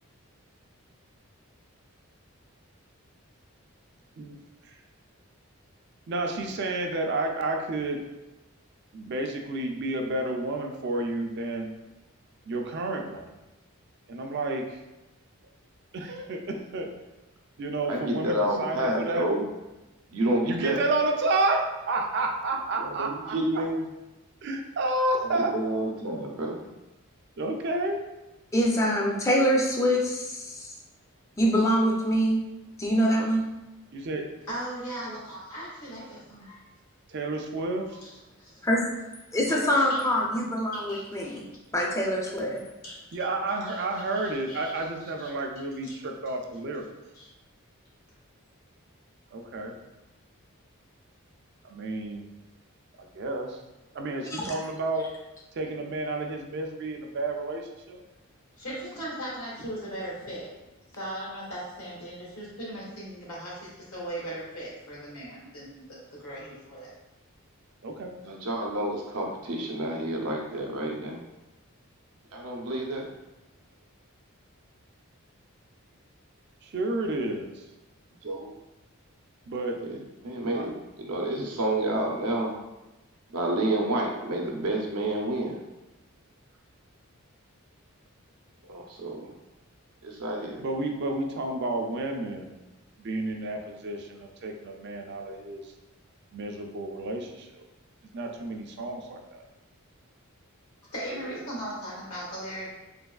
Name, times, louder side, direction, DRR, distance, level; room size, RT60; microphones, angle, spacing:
voice 1, 6.1-8.0 8.9-11.7 12.5-13.3 14.1-14.8 15.9-16.9 17.6-19.4 20.4-23.4 24.4-25.6 27.4-28.0 33.9-34.4 37.1-38.0 43.1-46.9 49.3-49.7 51.6-52.2 53.0-53.6 53.9-55.1 55.6-58.0 67.8-68.1 76.6-77.6 79.5-79.8 80.5-80.7 90.6-92.6 93.0-95.7 96.3-97.6 98.1-99.4, right 2 dB, 50° right, 3 dB, 0.4 m, -30 dB
voice 2, 17.9-19.4 20.1-20.8 22.8-23.8 25.3-26.7 68.3-71.2 72.3-73.1 78.2-78.5 79.9-82.5 83.3-85.6 88.6-89.3 90.0-90.6, right 1 dB, 85° right, 0 dB, 0.6 m, -29 dB
voice 3, 28.5-30.7 31.4-32.4 32.8-33.5 38.6-38.9 39.3-41.4 41.7-42.6 54.3-54.5, equal, 15° left, -1 dB, 0.4 m, -24 dB
voice 4, 34.5-36.7 37.9-38.1 38.4-38.6 39.5-41.4 42.8-42.9 43.7-44.9 45.8-45.9 47.1-47.3 58.6-60.5 60.9-66.9 100.8-102.7, right 1 dB, 85° left, -6 dB, 1.4 m, -38 dB
3.3 x 2.9 x 2.3 m, 1.0 s
head